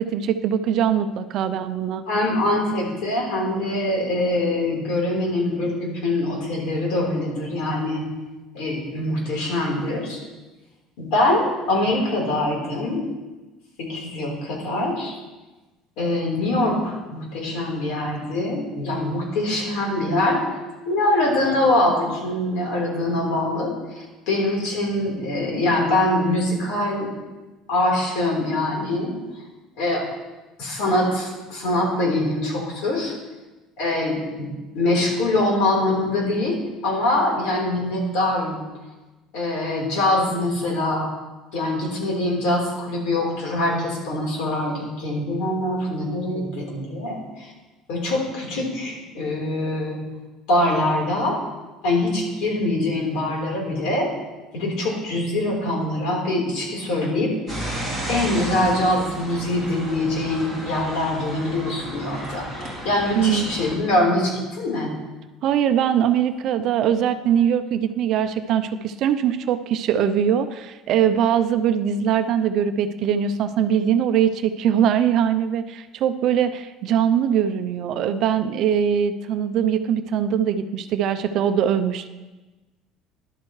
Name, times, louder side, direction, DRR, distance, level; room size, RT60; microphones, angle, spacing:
voice 1, 0.0-2.0 63.1-63.4 65.4-82.1, right 9 dB, 45° right, 9 dB, 0.6 m, -21 dB
voice 2, 2.1-8.0 8.5-10.2 11.0-13.0 13.8-15.2 16.0-20.5 20.8-27.1 27.7-29.1 29.8-30.1 30.6-33.1 33.8-34.5 34.7-36.6 36.8-38.6 39.3-41.1 41.5-47.5 47.9-50.0 50.5-51.4 51.8-54.1 54.5-57.3 58.1-64.9, left 1 dB, 65° left, -2 dB, 4.0 m, -23 dB
sound 1, 57.5-63.7, right 1 dB, 15° left, 3.1 m, -33 dB
13.0 x 11.5 x 3.2 m, 1.2 s
cardioid pair, 160°, 0 cm